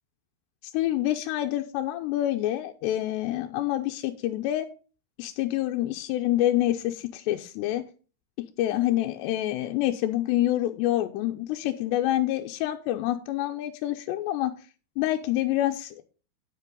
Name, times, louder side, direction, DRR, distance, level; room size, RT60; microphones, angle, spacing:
voice 1, 0.6-4.7 5.2-7.8 8.6-14.5 15.0-16.0, left 14 dB, 90° left, 4 dB, 2.9 m, -27 dB
9.6 x 8.2 x 3.8 m, 0.36 s
omnidirectional pair, 4.8 m